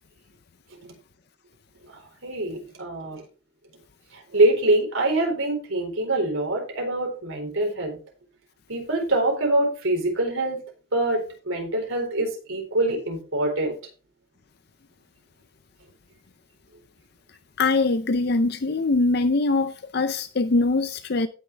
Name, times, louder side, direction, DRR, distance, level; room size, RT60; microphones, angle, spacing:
voice 1, 2.2-3.2 4.3-8.0 8.7-10.6 10.9-13.7, right 2 dB, 80° right, 4.1 m, -24 dB
voice 2, 17.6-21.3, left 3 dB, 50° left, 0.5 m, -22 dB
16.5 x 6.6 x 3.4 m
head